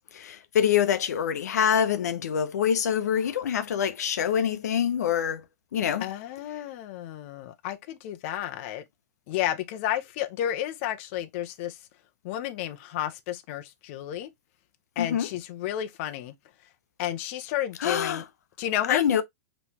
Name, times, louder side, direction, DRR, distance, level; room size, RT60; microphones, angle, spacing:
voice 1, 0.1-5.4 5.7-6.0 15.0-15.3 17.8-18.2 18.9-19.2, left 8 dB, 80° left, 0.7 m, -25 dB
voice 2, 6.0-8.8 9.3-11.8 12.2-14.3 15.0-16.3 17.0-18.2 18.6-19.0, left 12 dB, 45° left, 0.6 m, -31 dB
5.2 x 3.1 x 2.8 m
hypercardioid pair, 145°, 9 cm